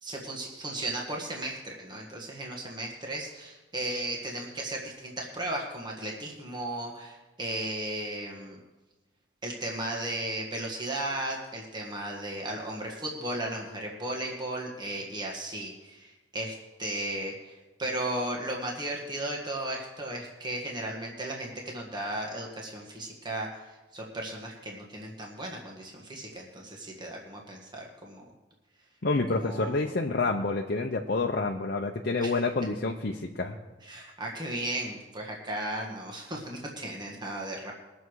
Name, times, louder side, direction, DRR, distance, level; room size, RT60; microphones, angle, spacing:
voice 1, 0.0-8.6 9.4-28.2 29.4-29.8 32.2-32.4 33.8-37.7, right 1 dB, 25° right, -1 dB, 1.7 m, -35 dB
voice 2, 29.0-33.6, left 3 dB, 55° left, 1 dB, 0.8 m, -28 dB
21.0 x 7.0 x 4.8 m, 1.1 s
head